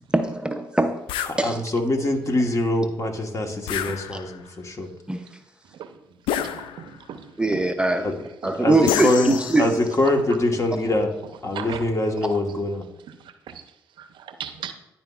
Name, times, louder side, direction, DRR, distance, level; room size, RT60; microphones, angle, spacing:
voice 1, 0.1-1.0 1.4-1.6 4.1-4.2 5.1-5.2 7.4-8.1 8.4-9.8, right 2 dB, 10° right, 6 dB, 0.5 m, -22 dB
sound 1, 1.1-1.4 3.7-4.5 6.3-7.1 8.9-10.0, left 10 dB, 80° left, 0.3 m, -29 dB
voice 2, 1.3-4.9 8.0-8.1 8.5-11.1 11.4-12.8, left 1 dB, 35° left, 4 dB, 1.2 m, -24 dB
voice 3, 6.4-7.6 8.4-8.5 10.0-10.1 10.5-10.6 11.5-11.9 12.3-12.4 13.1-13.2 13.5-13.6 14.0-14.7, right 9 dB, 70° right, 9 dB, 0.6 m, -37 dB
10.5 x 4.2 x 2.3 m, 0.91 s
supercardioid pair, 50°, 9 cm